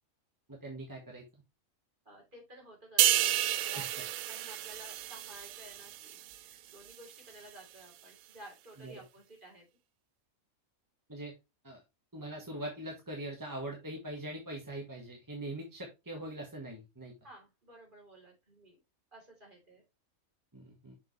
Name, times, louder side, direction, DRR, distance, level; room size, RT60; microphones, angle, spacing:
voice 1, 0.5-1.2 3.7-3.9 8.8-8.9 11.1-11.3 11.6-11.8 12.1-17.1 20.5-20.9, right 1 dB, 15° right, 0 dB, 1.4 m, -42 dB
voice 2, 2.1-9.6 17.2-18.8 19.1-19.8, right 1 dB, 35° right, -1 dB, 3.5 m, -54 dB
sound 1, 3.0-6.5 6.9-7.1, right 13 dB, 85° right, 1.0 m, -31 dB
7.0 x 5.4 x 3.2 m, 0.24 s
omnidirectional pair, 1.5 m